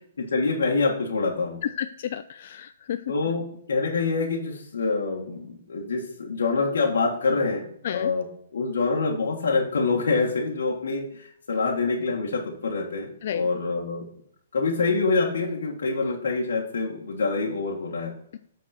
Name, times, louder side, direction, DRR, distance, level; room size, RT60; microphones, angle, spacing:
voice 1, 0.2-1.6 3.1-14.0 14.5-18.1, left 4 dB, 85° left, -2 dB, 1.5 m, -26 dB
voice 2, 1.6-3.0 7.8-8.1 13.2-13.5, left 10 dB, 50° left, 11 dB, 0.3 m, -31 dB
7.9 x 4.2 x 4.3 m, 0.66 s
hypercardioid pair, 160°, 0 cm